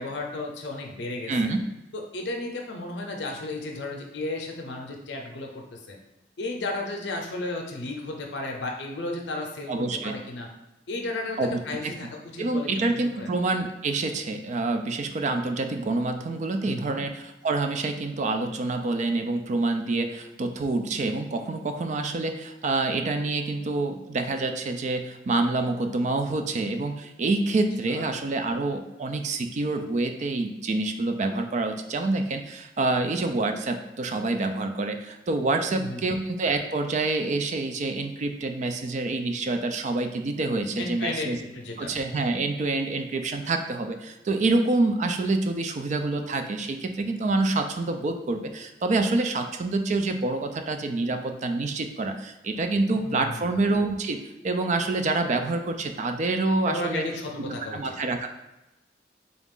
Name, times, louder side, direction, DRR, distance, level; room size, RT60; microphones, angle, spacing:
voice 1, 0.0-1.3 1.9-6.0 6.4-10.5 10.9-13.3 16.7-17.0 27.9-28.1 35.7-36.2 40.8-41.9 52.9-53.6 56.6-58.0, left 2 dB, 70° left, 2 dB, 0.6 m, -34 dB
voice 2, 1.3-1.6 9.7-10.2 11.4-11.9 12.4-41.4 41.8-57.0 57.5-58.3, right 2 dB, 40° right, 6 dB, 0.3 m, -27 dB
3.9 x 2.4 x 3.6 m, 0.99 s
head